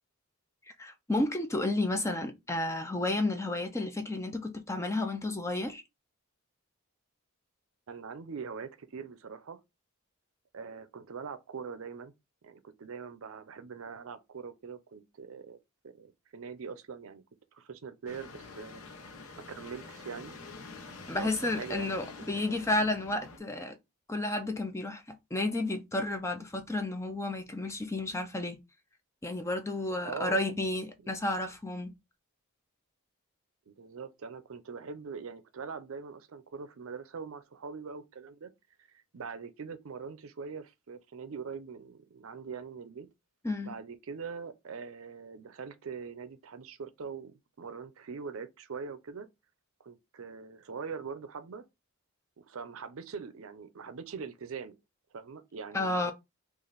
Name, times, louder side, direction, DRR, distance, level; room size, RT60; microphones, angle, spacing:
voice 1, 0.8-5.8 21.1-23.8 24.1-28.6 29.2-31.9 43.4-43.7 55.7-56.1, left 2 dB, 15° left, 0.4 m, -32 dB
voice 2, 7.9-9.6 10.5-12.1 12.4-15.6 15.8-17.2 17.5-18.8 19.6-20.3 21.1-22.6 30.0-30.4 33.7-38.5 38.9-43.1 43.7-49.3 49.8-51.6 52.4-54.8 55.1-56.1, right 5 dB, 70° right, 0.5 m, -42 dB
sound 1, 18.1-23.4, left 3 dB, 80° left, 0.8 m, -47 dB
3.2 x 2.5 x 3.9 m
head